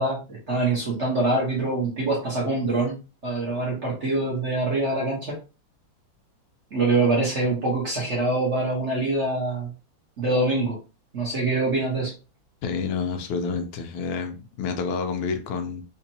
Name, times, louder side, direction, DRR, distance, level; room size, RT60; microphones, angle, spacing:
voice 1, 0.0-5.4 6.7-9.7 10.2-10.8 11.1-12.1, right 2 dB, 40° right, 1.1 m, -24 dB
voice 2, 12.6-15.8, left 5 dB, 80° left, 1.5 m, -29 dB
4.5 x 2.5 x 2.8 m
omnidirectional pair, 2.3 m